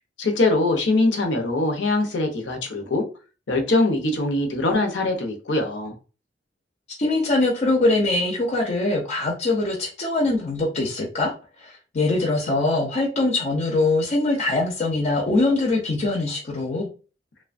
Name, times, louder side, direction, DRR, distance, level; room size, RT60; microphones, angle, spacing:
voice 1, 0.2-3.0 3.5-5.9, left 2 dB, 75° left, 0.7 m, -22 dB
voice 2, 7.0-11.3 11.6-16.9, left 2 dB, 40° left, 0.6 m, -22 dB
3.0 x 2.2 x 2.4 m
head